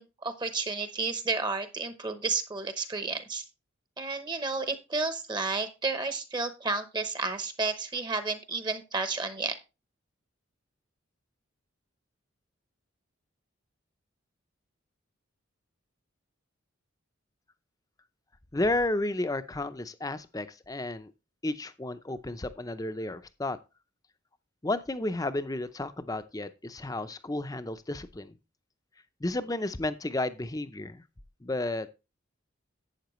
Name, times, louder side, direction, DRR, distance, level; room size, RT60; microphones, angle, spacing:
voice 1, 0.0-3.4 4.0-9.6, right 3 dB, 20° right, 0.8 m, -31 dB
voice 2, 18.5-21.1 21.4-23.6 24.6-28.3 29.2-31.0 31.4-31.9, left 2 dB, 15° left, 0.6 m, -32 dB
11.5 x 8.7 x 3.1 m
head